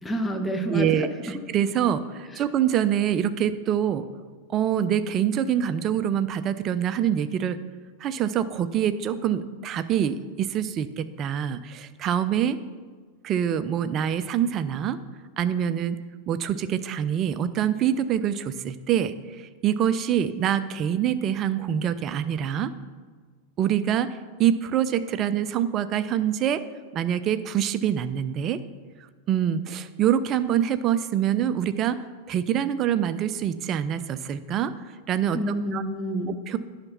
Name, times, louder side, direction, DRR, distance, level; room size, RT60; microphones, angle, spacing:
voice 1, 0.0-1.1 2.3-2.4 35.3-36.4, equal, 10° left, 6 dB, 0.9 m, -28 dB
voice 2, 0.7-4.1 4.5-7.6 8.0-12.6 13.2-15.0 15.4-16.0 16.3-19.1 19.6-22.7 23.6-24.1 24.4-26.6 26.9-28.6 29.3-32.0 32.3-34.7 35.1-35.8 36.3-36.6, right 9 dB, 30° right, 12 dB, 0.5 m, -25 dB
9.8 x 5.9 x 5.6 m, 1.5 s
figure-of-eight pair, 90°, 0 cm